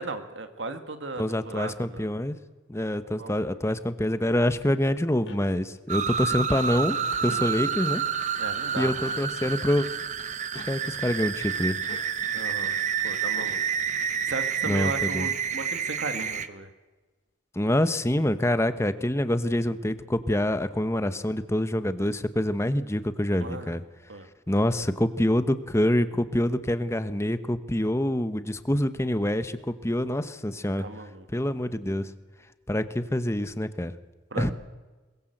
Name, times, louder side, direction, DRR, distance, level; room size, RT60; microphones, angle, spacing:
voice 1, 0.0-2.1 3.2-3.5 8.4-9.1 12.3-12.7 13.0-13.6 14.3-16.7 23.4-23.8 24.1-24.3 30.8-31.3 34.3-34.5, right 3 dB, 80° right, 8 dB, 1.9 m, -36 dB
voice 2, 1.2-2.4 2.7-8.0 8.8-9.9 10.7-11.8 14.7-15.3 17.5-23.8 24.5-30.9 31.3-32.1 32.7-33.9 34.3-34.5, left 1 dB, 15° left, 12 dB, 1.0 m, -26 dB
sound 1, 5.3-5.4 7.2-7.5 9.1-9.2 10.6-10.8 11.9-12.1 13.3-13.6 14.8-15.1 16.2-16.4, left 2 dB, 75° left, 2.1 m, -44 dB
sound 2, 5.9-16.5, right 7 dB, 40° right, 1.1 m, -29 dB
22.0 x 21.5 x 7.9 m, 1.3 s
head